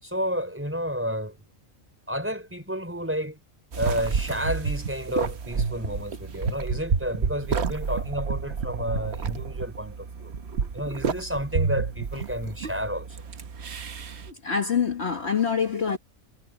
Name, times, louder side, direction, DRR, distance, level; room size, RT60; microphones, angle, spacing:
voice 1, 0.0-1.4 2.1-3.4 3.7-10.3 10.7-13.2, equal, 10° right, 4.7 m, -31 dB
sound 1, 3.7-14.3, right 5 dB, 55° right, 1.2 m, -30 dB
voice 2, 14.4-16.0, left 6 dB, 55° left, 1.7 m, -25 dB
omnidirectional pair, 1.4 m